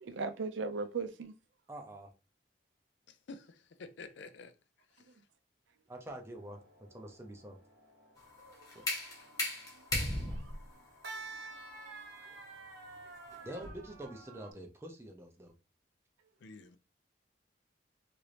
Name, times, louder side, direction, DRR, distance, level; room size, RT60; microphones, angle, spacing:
voice 1, 0.0-1.3 5.1-5.2 8.4-8.9 9.7-9.9 10.3-10.6 11.1-11.2 11.5-12.4 13.3-13.4, right 4 dB, 85° right, 0.5 m, -41 dB
voice 2, 1.7-2.1 5.9-6.6 6.9-7.6 8.7-8.8 13.4-15.5, right 1 dB, 15° right, 0.5 m, -46 dB
voice 3, 3.1-4.5 16.4-16.8, left 3 dB, 75° left, 0.4 m, -49 dB
sound 1, 6.3-14.5, right 3 dB, 60° right, 0.8 m, -51 dB
sound 2, 8.2-13.9, left 1 dB, 20° left, 0.9 m, -39 dB
3.0 x 2.5 x 3.2 m
head